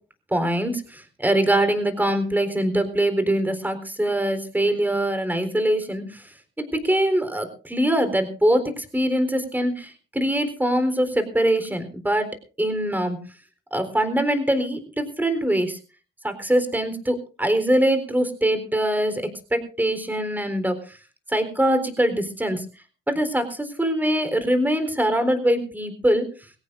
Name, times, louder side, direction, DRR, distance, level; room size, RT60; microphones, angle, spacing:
voice 1, 0.3-6.2 6.6-12.3 12.6-13.2 13.7-15.8 16.2-19.2 19.5-20.8 21.3-22.6 23.1-26.3, right 1 dB, 10° right, 9 dB, 3.9 m, -23 dB
21.5 x 17.5 x 2.6 m, 0.36 s
cardioid pair, 90°, 20 cm